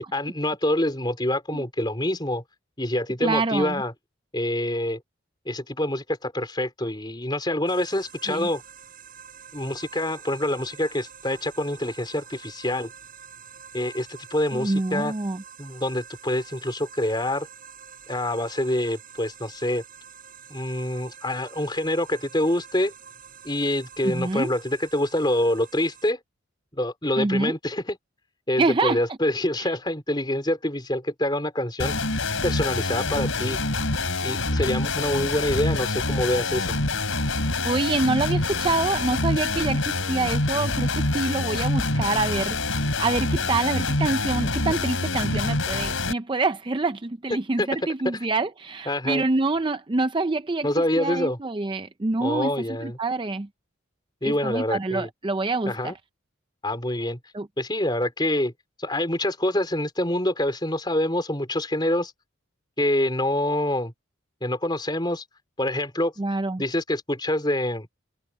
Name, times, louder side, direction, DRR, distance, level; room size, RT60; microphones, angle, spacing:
voice 1, 0.0-2.4 2.8-3.9 4.3-5.0 5.5-8.6 9.5-12.9 13.7-15.1 15.6-17.5 18.1-19.8 20.5-22.9 23.4-26.2 26.8-28.0 28.5-31.9 32.4-33.6 34.2-36.8 47.6-47.7 48.0-48.2 48.9-49.2 50.6-51.4 52.2-53.0 54.2-55.1 55.7-55.9 56.6-57.2 57.6-58.5 58.8-62.1 62.8-63.9 64.4-65.2 65.6-66.1 66.6-67.9, left 1 dB, 20° left, 3.8 m, -26 dB
voice 2, 3.2-3.8 8.3-8.5 14.5-15.4 24.0-24.5 27.2-27.5 28.6-29.0 29.6-29.7 37.6-50.7 51.0-52.5 52.8-53.5 54.2-55.9 57.3-57.5 66.2-66.6, right 3 dB, 25° right, 0.5 m, -26 dB
sound 1, 7.7-26.1, right 7 dB, 45° right, 5.1 m, -47 dB
sound 2, 31.8-46.1, left 2 dB, 75° left, 4.2 m, -26 dB
head